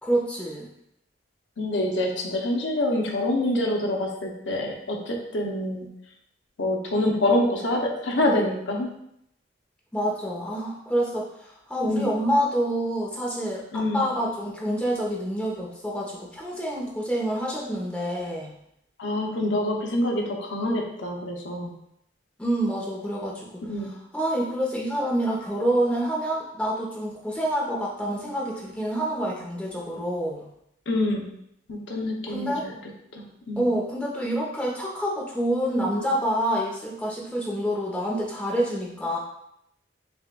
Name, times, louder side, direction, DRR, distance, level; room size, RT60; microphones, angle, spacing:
voice 1, 0.0-0.7 9.9-18.5 22.4-30.5 32.3-32.7 33.6-39.2, right 1 dB, 5° left, -4 dB, 0.8 m, -27 dB
voice 2, 1.6-5.9 6.6-8.9 11.8-12.1 13.7-14.0 19.0-21.7 23.7-23.9 30.9-31.3 31.7-32.7 33.1-33.7, left 1 dB, 75° left, 0 dB, 0.8 m, -26 dB
6.9 x 2.4 x 2.3 m, 0.76 s
head